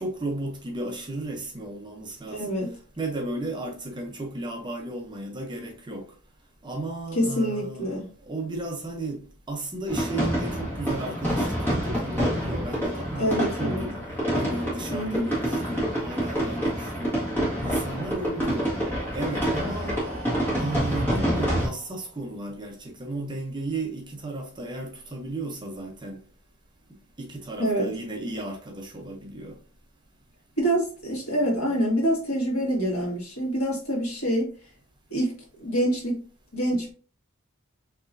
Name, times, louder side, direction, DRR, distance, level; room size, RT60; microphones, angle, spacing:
voice 1, 0.0-2.6 3.0-6.1 6.6-8.0 8.2-14.0 14.3-17.2 17.6-18.7 19.1-20.0 20.6-26.2 27.2-29.6, right 2 dB, 20° right, 0.6 m, -34 dB
voice 2, 2.3-2.8 7.2-8.1 13.2-13.8 14.9-15.4 27.6-27.9 30.6-34.5 35.1-35.3 35.6-36.2 36.5-36.9, equal, 75° left, 1.8 m, -26 dB
sound 1, 9.9-21.7, equal, 10° left, 1.6 m, -27 dB
Breathing, 18.7-22.5, right 1 dB, 45° right, 1.5 m, -44 dB
4.7 x 3.0 x 2.6 m
head